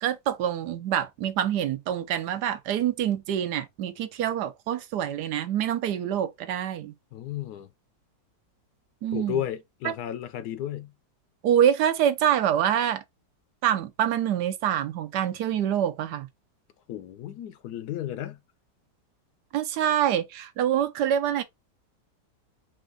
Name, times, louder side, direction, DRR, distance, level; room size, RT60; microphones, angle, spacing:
voice 1, 0.0-6.9 9.0-9.4 9.8-9.9 11.4-13.0 13.6-16.3 19.5-21.4, right 10 dB, 75° right, 1.1 m, -26 dB
voice 2, 7.1-7.7 9.1-10.9 16.9-18.4, left 10 dB, 70° left, 1.0 m, -33 dB
4.4 x 2.5 x 3.7 m
omnidirectional pair, 1.9 m